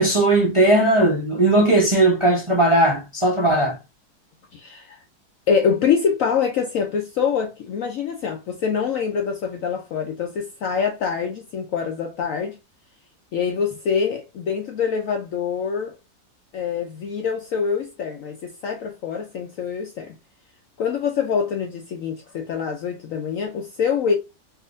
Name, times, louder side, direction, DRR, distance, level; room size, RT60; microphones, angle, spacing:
voice 1, 0.0-3.8, right 2 dB, 45° right, 0.4 m, -18 dB
voice 2, 4.5-5.0 5.5-12.6 13.3-16.0 16.5-20.2 20.8-24.1, left 6 dB, 70° left, 0.7 m, -25 dB
3.6 x 2.8 x 2.4 m
omnidirectional pair, 2.0 m